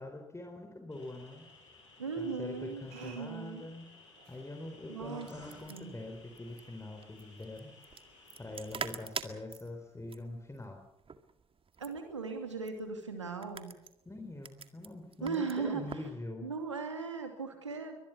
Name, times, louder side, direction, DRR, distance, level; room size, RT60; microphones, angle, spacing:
voice 1, 0.0-1.4 2.2-3.9 4.3-7.7 8.4-10.8 14.1-16.5, left 2 dB, 20° left, 3 dB, 4.1 m, -44 dB
sound 1, 0.9-8.9, left 3 dB, 85° left, 5.9 m, -58 dB
voice 2, 2.0-3.7 4.9-5.3 5.7-5.9 11.8-13.7 15.2-16.0 16.4-18.0, right 5 dB, 85° right, 6 dB, 2.6 m, -38 dB
sound 2, 2.5-8.1, right 5 dB, 70° right, 6.5 m, -62 dB
sound 3, 5.0-16.1, right 5 dB, 40° right, 2.0 m, -47 dB
23.5 x 20.5 x 7.1 m, 0.82 s
figure-of-eight pair, 40°, 15 cm